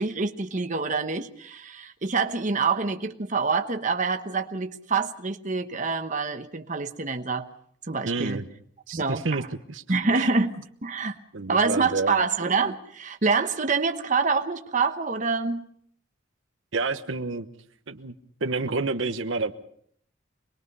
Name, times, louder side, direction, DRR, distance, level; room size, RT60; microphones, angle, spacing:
voice 1, 0.0-7.5 7.8-8.4 8.9-9.4 9.9-11.2 11.5-15.7, right 4 dB, 40° right, 6 dB, 1.1 m, -26 dB
voice 2, 8.1-8.4 8.9-9.4 9.7-9.8 10.1-10.3 11.3-12.2 16.7-17.5 17.9-18.1 18.4-19.5, right 3 dB, 80° right, 8 dB, 1.1 m, -29 dB
26.0 x 21.0 x 5.5 m, 0.63 s
head